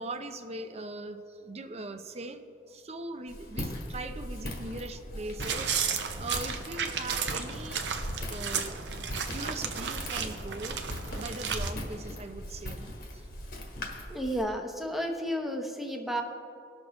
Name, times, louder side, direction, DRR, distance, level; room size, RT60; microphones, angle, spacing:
voice 1, 0.0-8.8 9.1-13.3, right 2 dB, 35° right, 8 dB, 0.6 m, -41 dB
Walk footsteps, 3.3-14.4, left 1 dB, 60° left, 1.4 m, -40 dB
sound 1, 5.4-11.7, right 6 dB, 85° right, 0.8 m, -33 dB
voice 2, 14.1-16.2, equal, ahead, 3 dB, 0.9 m, -32 dB
19.0 x 6.4 x 3.1 m, 2.5 s
head